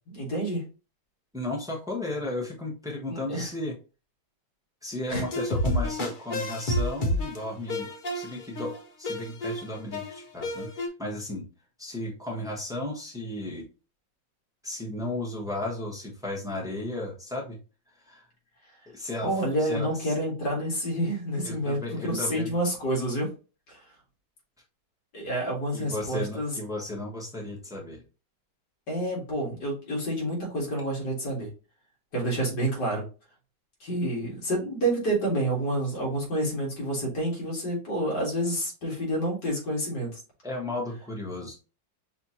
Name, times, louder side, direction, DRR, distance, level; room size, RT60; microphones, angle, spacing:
voice 1, 0.1-0.6 3.1-3.5 5.1-5.2 19.2-23.3 23.7-23.8 25.1-26.5 28.9-31.5 32.1-33.0 33.8-40.1, right 1 dB, 65° left, -3 dB, 2.5 m, -28 dB
voice 2, 1.3-3.7 4.8-11.4 11.8-13.7 14.6-17.6 18.1-18.3 18.9-19.3 19.6-20.2 21.4-22.5 25.7-28.0 40.4-41.5, left 1 dB, 5° right, -2 dB, 0.9 m, -34 dB
sound 1, 5.1-10.9, left 1 dB, 50° left, 0.6 m, -30 dB
5.9 x 2.8 x 2.8 m, 0.33 s
omnidirectional pair, 1.9 m